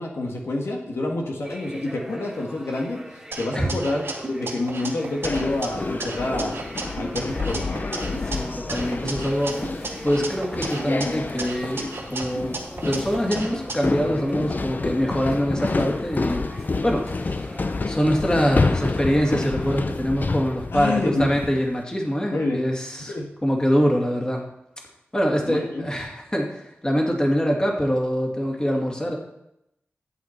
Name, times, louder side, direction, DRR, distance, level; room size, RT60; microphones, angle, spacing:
voice 1, 0.0-3.0 3.4-6.6 6.9-7.8 20.7-21.5 22.3-22.7 23.1-23.3 25.4-25.9, left 2 dB, 85° left, 0 dB, 1.7 m, -27 dB
sound 1, 1.4-19.8, right 1 dB, 10° right, 2.1 m, -42 dB
sound 2, 3.3-5.7 6.0-8.4 8.7-11.1 11.4-13.8, right 2 dB, 75° right, 2.1 m, -33 dB
sound 3, 5.2-21.7, left 3 dB, 45° left, 0.5 m, -29 dB
voice 2, 8.3-12.6 12.9-17.5 17.9-23.1 23.4-24.5 25.1-29.2, equal, 20° left, 0 dB, 2.4 m, -24 dB
11.5 x 8.3 x 4.5 m, 0.82 s
wide cardioid pair, 80°, 4 cm